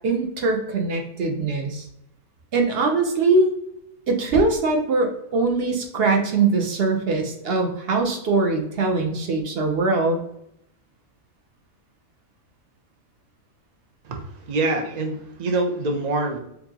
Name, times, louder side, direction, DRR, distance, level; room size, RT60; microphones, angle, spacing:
voice 1, 0.0-1.9 2.5-3.5 4.1-10.2, right 3 dB, 55° right, 3 dB, 0.7 m, -22 dB
voice 2, 14.0-16.4, right 2 dB, 90° right, 2 dB, 0.3 m, -25 dB
4.5 x 2.6 x 2.8 m, 0.77 s
omnidirectional pair, 1.6 m